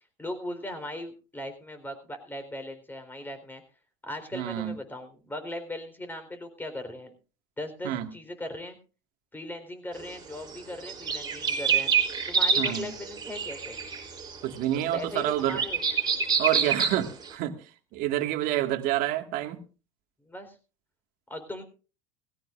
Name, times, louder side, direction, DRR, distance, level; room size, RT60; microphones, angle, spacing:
voice 1, 0.2-3.6 4.0-7.1 7.6-8.8 9.3-11.9 12.3-13.8 14.7-15.8 18.2-18.3 20.3-20.6 21.3-21.6, left 1 dB, 10° left, 7 dB, 4.0 m, -38 dB
voice 2, 4.3-4.8 7.8-8.1 12.6-12.9 14.4-15.6 16.4-17.6 17.9-19.6, right 13 dB, 65° right, 6 dB, 2.0 m, -28 dB
sound 1, 10.0-10.1 10.3-17.3, right 6 dB, 25° right, 3.2 m, -27 dB
19.0 x 16.5 x 2.6 m, 0.35 s
hypercardioid pair, 90°, 16 cm